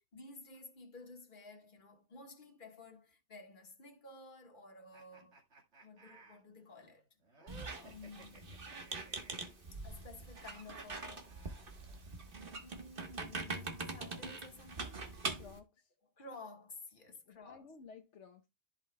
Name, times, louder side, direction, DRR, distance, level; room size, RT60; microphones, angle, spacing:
voice 1, 0.1-5.4 5.8-7.1 7.7-8.8 9.7-11.4 12.6-15.1 16.0-17.7, left 3 dB, 45° left, 1.6 m, -53 dB
sound 1, 4.9-9.6 10.8-12.5, right 2 dB, 70° right, 2.2 m, -61 dB
Squeak, 7.5-15.6, right 3 dB, 50° right, 1.5 m, -43 dB
voice 2, 15.4-15.9 17.3-18.5, left 5 dB, 75° left, 1.2 m, -55 dB
14.5 x 5.4 x 2.2 m
omnidirectional pair, 1.2 m